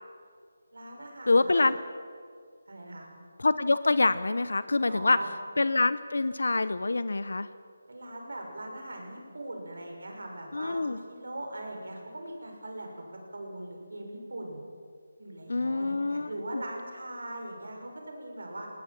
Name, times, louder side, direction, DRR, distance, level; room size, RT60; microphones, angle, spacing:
voice 1, 0.7-1.7 2.7-3.0 4.9-5.3 7.9-13.0 13.3-14.6 15.2-18.7, right 1 dB, 75° right, 1 dB, 6.4 m, -40 dB
voice 2, 1.3-1.8 3.4-5.2 5.6-7.5 10.5-11.0 15.5-16.3, left 3 dB, 75° left, 14 dB, 0.8 m, -25 dB
19.5 x 19.5 x 7.5 m, 2.1 s
figure-of-eight pair, 160°, 0 cm